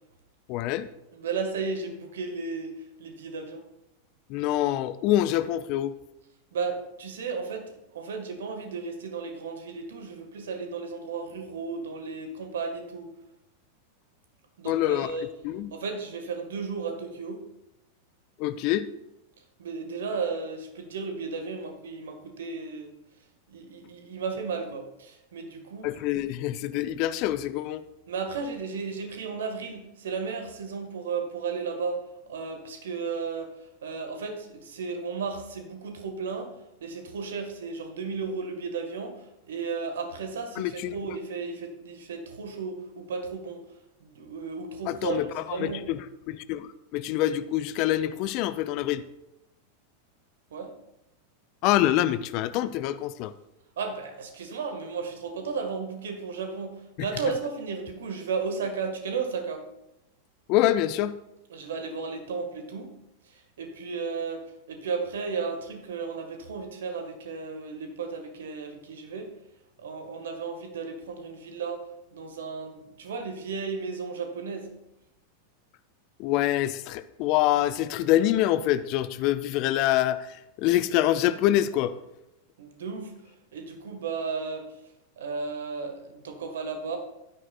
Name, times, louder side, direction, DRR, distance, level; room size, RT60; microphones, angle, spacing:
voice 1, 0.5-0.9 4.3-6.0 14.7-15.1 15.4-15.7 18.4-18.9 25.8-27.8 40.6-40.9 44.9-49.0 51.6-53.3 60.5-61.2 76.2-81.9, left 13 dB, 40° left, 14 dB, 0.5 m, -26 dB
voice 2, 1.1-3.6 6.5-13.1 14.6-15.3 15.7-17.5 19.6-22.9 23.5-25.9 28.1-32.0 32.3-33.5 33.8-43.6 44.0-45.8 50.5-50.7 53.8-59.6 61.5-62.9 63.3-69.3 69.8-71.8 72.1-74.7 82.6-83.1 83.5-84.6 85.2-87.0, right 5 dB, 60° right, 5 dB, 1.6 m, -34 dB
15.0 x 9.8 x 2.4 m, 0.89 s
figure-of-eight pair, 90°, 0 cm